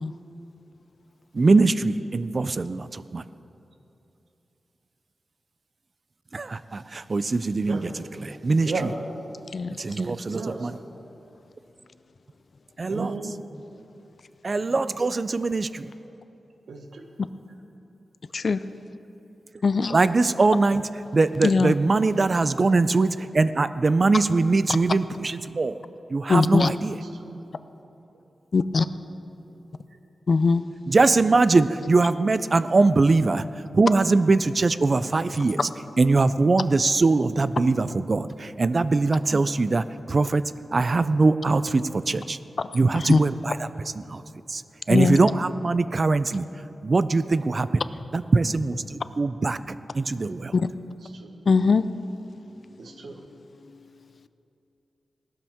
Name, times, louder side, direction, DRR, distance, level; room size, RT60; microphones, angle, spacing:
voice 1, 1.3-3.2 6.3-7.9 8.2-8.9 9.8-10.7 12.8-13.1 14.4-15.9 19.9-25.8 26.1-27.0 30.9-33.5 33.7-35.7 36.0-40.4 40.7-42.4 42.7-44.2 44.5-44.6 44.9-46.5 46.8-47.8 48.1-50.5, right 3 dB, 40° right, 14 dB, 0.4 m, -22 dB
voice 2, 8.6-8.9 10.3-10.7 12.8-13.4 16.7-17.1 24.5-24.8 27.0-27.4 51.0-51.4 52.8-53.2, right 4 dB, 80° right, 3 dB, 1.2 m, -34 dB
voice 3, 19.6-20.0 21.4-21.7 26.3-26.7 28.5-28.9 30.3-30.6 43.0-43.2 44.9-45.2 50.5-50.7 51.5-51.8, left 4 dB, 55° left, 13 dB, 0.4 m, -20 dB
18.0 x 12.5 x 3.6 m, 2.9 s
wide cardioid pair, 90°, 0 cm